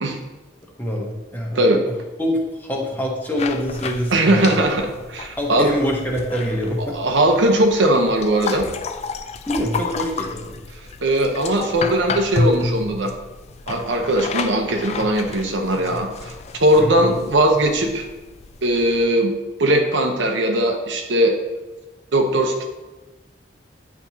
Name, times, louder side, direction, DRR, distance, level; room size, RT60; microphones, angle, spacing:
voice 1, 0.8-1.8 2.2-4.6 5.4-7.0 9.5-10.6, equal, 10° left, -2 dB, 1.0 m, -25 dB
sound 1, 3.4-19.1, left 3 dB, 35° left, 0.3 m, -31 dB
voice 2, 4.1-5.7 6.9-8.7 11.0-13.1 13.7-18.1 18.6-19.3 19.6-21.4 22.1-22.6, right 1 dB, 85° right, 3 dB, 0.9 m, -19 dB
9.6 x 4.3 x 2.8 m, 1.1 s
head